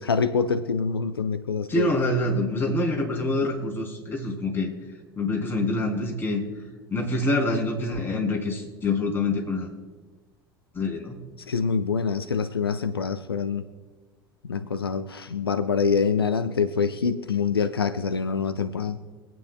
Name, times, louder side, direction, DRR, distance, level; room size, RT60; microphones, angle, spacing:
voice 1, 0.0-1.9 11.5-13.6 14.4-19.0, left 5 dB, 80° left, 10 dB, 0.6 m, -25 dB
voice 2, 1.7-4.7 5.2-6.5 6.9-9.7 10.7-11.2, left 2 dB, 20° left, -1 dB, 3.3 m, -26 dB
25.0 x 9.1 x 2.3 m, 1.3 s
figure-of-eight pair, 70°, 12 cm